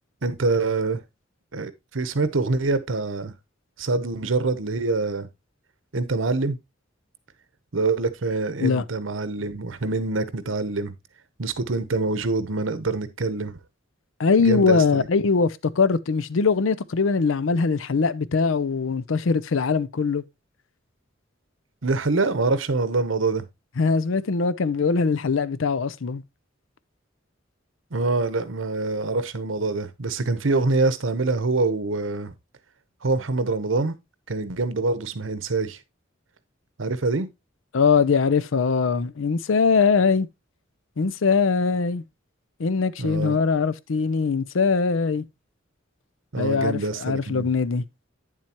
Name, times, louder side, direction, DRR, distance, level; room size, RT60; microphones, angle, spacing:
voice 1, 0.2-1.0 1.5-3.3 3.8-5.3 5.9-6.6 7.7-10.9 11.4-13.6 14.4-15.1 21.8-23.4 27.9-32.3 33.0-33.9 34.3-35.8 36.8-37.3 43.0-43.4 46.3-47.5, right 3 dB, 85° right, 0.9 m, -25 dB
voice 2, 14.2-20.2 23.8-26.2 37.7-40.3 41.0-42.0 42.6-45.2 46.4-47.8, left 5 dB, 85° left, 0.6 m, -22 dB
9.2 x 7.4 x 2.9 m
head